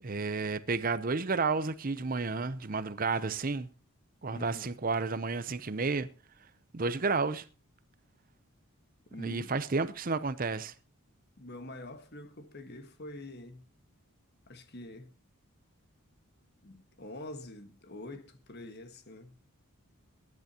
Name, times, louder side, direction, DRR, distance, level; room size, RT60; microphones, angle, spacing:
voice 1, 0.0-3.7 4.2-6.1 6.7-7.5 9.2-10.7, right 4 dB, 40° right, 0.7 m, -31 dB
voice 2, 4.3-4.8 9.1-9.5 11.4-13.6 14.5-15.1 16.6-19.3, left 1 dB, 45° left, 1.5 m, -45 dB
21.5 x 10.5 x 2.9 m
head